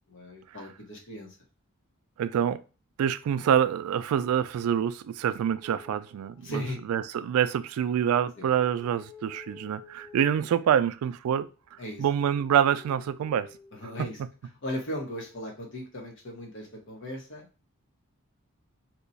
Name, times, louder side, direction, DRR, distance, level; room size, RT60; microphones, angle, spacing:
voice 1, 0.1-1.3 6.4-6.8 8.4-8.5 11.8-12.0 13.7-14.2 14.6-17.5, equal, 60° left, 1.1 m, -37 dB
voice 2, 2.2-2.6 3.0-6.6 6.9-11.5 12.0-13.5 13.8-13.9, right 9 dB, 80° right, 0.3 m, -26 dB
sound 1, 5.6-7.3 8.1-10.8 11.6-14.2 15.3-15.9, left 4 dB, 30° left, 0.4 m, -52 dB
2.9 x 2.3 x 3.9 m
head